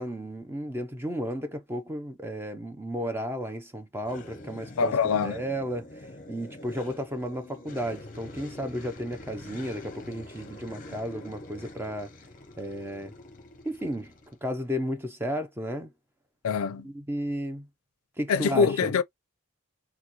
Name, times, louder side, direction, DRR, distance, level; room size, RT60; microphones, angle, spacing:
voice 1, 0.0-12.1 12.6-13.1 13.6-14.1 14.4-15.9 16.8-17.7 18.2-18.9, equal, 10° right, 0.5 m, -33 dB
sound 1, 4.0-14.4, left 1 dB, 40° left, 0.7 m, -45 dB
voice 2, 4.8-5.4 16.4-16.9 18.3-19.0, left 6 dB, 85° left, 0.4 m, -24 dB
4.2 x 2.3 x 2.9 m
head